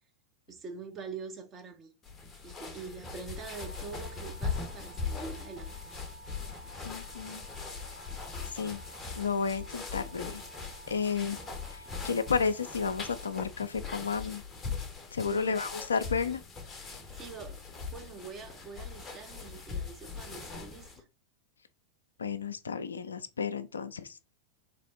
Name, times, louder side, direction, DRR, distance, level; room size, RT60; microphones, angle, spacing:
voice 1, 0.5-1.9 2.4-5.8 15.2-15.6 17.2-17.7 17.9-21.1, right 5 dB, 25° right, 0.9 m, -44 dB
sound 1, 2.0-21.0, left 5 dB, 20° left, 0.7 m, -40 dB
sound 2, 3.4-13.4, right 3 dB, 45° right, 1.1 m, -52 dB
voice 2, 6.8-7.4 8.5-8.8 9.1-10.4 10.9-11.4 11.7-14.4 15.1-16.4 22.2-24.2, left 5 dB, 70° left, 0.4 m, -32 dB
3.3 x 3.3 x 3.8 m
figure-of-eight pair, 90°, 0 cm